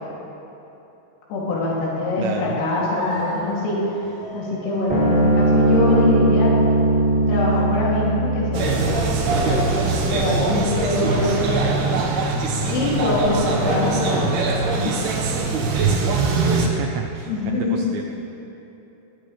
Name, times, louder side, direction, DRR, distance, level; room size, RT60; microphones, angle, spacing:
voice 1, 1.3-3.8 4.3-6.6 7.3-9.2 9.5-9.7 10.1-12.0 12.7-14.4 14.6-15.0 15.4-15.5 17.3-17.9, left 2 dB, 75° left, -6 dB, 5.5 m, -24 dB
voice 2, 2.2-2.6 16.4-18.0, right 8 dB, 85° right, 3 dB, 2.5 m, -29 dB
sound 1, 2.9-10.9, equal, 25° left, 2.2 m, -38 dB
sound 2, 4.9-11.5, right 2 dB, 15° right, 1.4 m, -21 dB
sound 3, 8.5-16.7, right 3 dB, 65° right, 2.8 m, -22 dB
21.5 x 18.5 x 3.4 m, 3.0 s
omnidirectional pair, 6.0 m